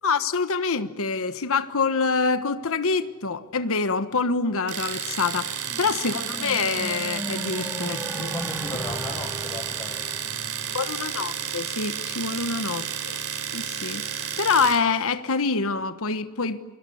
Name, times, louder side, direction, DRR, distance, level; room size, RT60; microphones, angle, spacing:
voice 1, 0.0-8.3 10.7-13.2 13.5-16.6, left 4 dB, 65° left, 11 dB, 1.2 m, -26 dB
Domestic sounds home sounds, 4.7-14.9, right 8 dB, 80° right, 3.8 m, -32 dB
sound 1, 5.7-11.2, equal, 5° right, 2.3 m, -37 dB
voice 2, 8.3-10.9 12.4-12.6, left 2 dB, 20° left, 10 dB, 1.4 m, -38 dB
29.0 x 24.0 x 7.1 m, 1.4 s
head